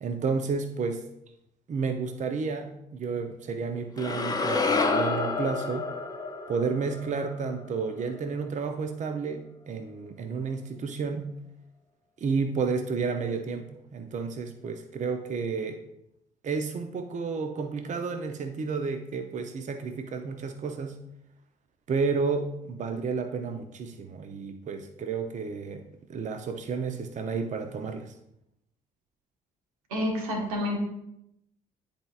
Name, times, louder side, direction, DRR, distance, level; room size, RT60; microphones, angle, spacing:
voice 1, 0.0-1.0 1.7-5.9 6.5-11.3 12.2-15.8 16.4-21.0 21.9-28.1, right 5 dB, 40° right, 7 dB, 0.7 m, -31 dB
sound 1, 4.0-8.2, left 3 dB, 20° left, 1.0 m, -29 dB
voice 2, 29.9-30.8, left 1 dB, 85° right, 1 dB, 1.3 m, -29 dB
10.5 x 4.4 x 2.4 m, 0.80 s
hypercardioid pair, 50°, 18 cm